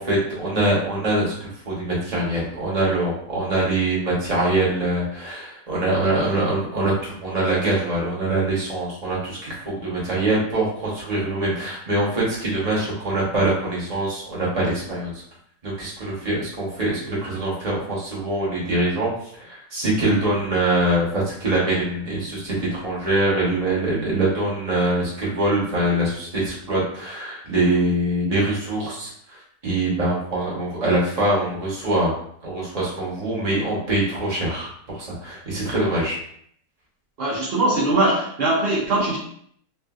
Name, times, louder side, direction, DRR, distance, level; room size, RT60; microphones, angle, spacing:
voice 1, 0.0-15.1 15.6-32.1 32.4-36.2, right 1 dB, 30° right, -6 dB, 0.9 m, -23 dB
voice 2, 37.2-39.2, right 2 dB, 70° right, -6 dB, 0.5 m, -21 dB
3.2 x 2.5 x 2.3 m, 0.66 s
omnidirectional pair, 1.8 m